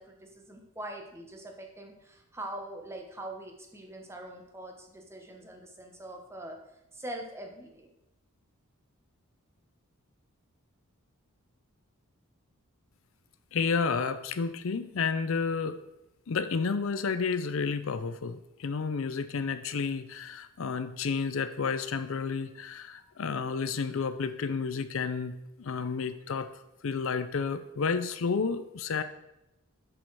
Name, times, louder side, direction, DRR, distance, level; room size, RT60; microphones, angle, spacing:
voice 1, 0.0-6.6 6.9-7.9, right 1 dB, 10° right, 2 dB, 1.1 m, -43 dB
voice 2, 13.5-15.8 16.3-26.5 26.8-29.0, left 5 dB, 60° left, 11 dB, 0.5 m, -31 dB
7.1 x 5.2 x 6.1 m, 0.90 s
head